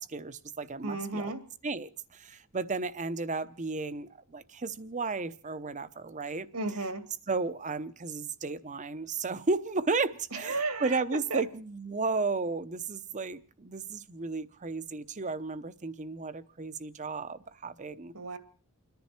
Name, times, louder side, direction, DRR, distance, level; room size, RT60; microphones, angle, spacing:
voice 1, 0.0-1.3 1.6-6.5 7.3-18.1, right 3 dB, 35° right, 0.8 m, -34 dB
voice 2, 0.8-1.4 6.5-7.1 10.4-11.0 11.3-11.4 18.1-18.4, right 3 dB, 85° right, 2.3 m, -33 dB
29.5 x 10.5 x 4.4 m
head